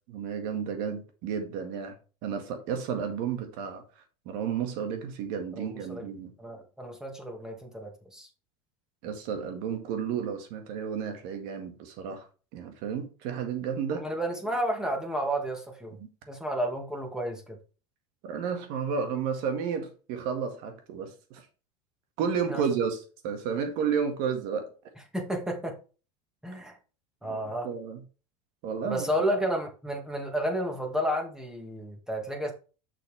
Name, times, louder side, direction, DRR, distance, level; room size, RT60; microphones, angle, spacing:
voice 1, 0.1-1.9 2.2-3.8 4.3-6.3 9.0-12.2 12.5-14.1 18.2-21.4 22.2-23.0 23.2-24.7 27.2-28.0 28.6-29.2, right 7 dB, 60° right, 1.9 m, -32 dB
voice 2, 5.5-6.1 6.4-8.3 13.9-16.0 16.3-17.6 22.5-22.6 25.1-25.7 26.4-26.8 27.2-27.7 28.9-32.5, equal, 5° right, 1.9 m, -31 dB
6.4 x 6.0 x 3.4 m
hypercardioid pair, 100°, 16 cm